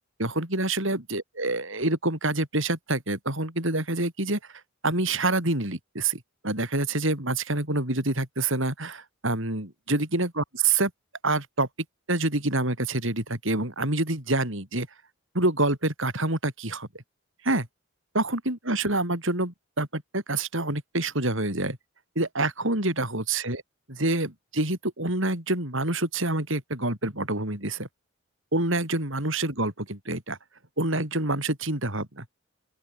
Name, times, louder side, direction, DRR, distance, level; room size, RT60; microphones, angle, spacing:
voice 1, 0.2-10.9 11.2-11.7 12.1-14.9 15.3-16.9 17.4-17.7 18.1-21.8 22.2-23.6 23.9-27.9 28.5-30.4 30.8-32.3, right 2 dB, 60° right, 5.5 m, -27 dB
open air
head